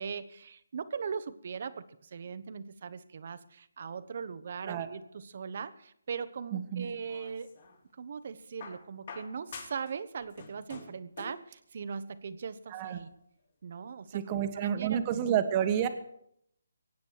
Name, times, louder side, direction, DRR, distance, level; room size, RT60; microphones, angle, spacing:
voice 1, 0.0-7.5 7.9-13.1 13.6-15.3, right 6 dB, 50° right, 13 dB, 1.1 m, -40 dB
voice 2, 6.5-6.9 12.7-13.0 14.1-15.9, right 9 dB, 25° right, 8 dB, 1.4 m, -29 dB
sound 1, 6.8-7.8 8.6-9.9 10.2-11.5 12.6-12.7, left 4 dB, 45° left, 4.1 m, -47 dB
23.5 x 9.4 x 4.8 m, 0.71 s
hypercardioid pair, 160°, 0 cm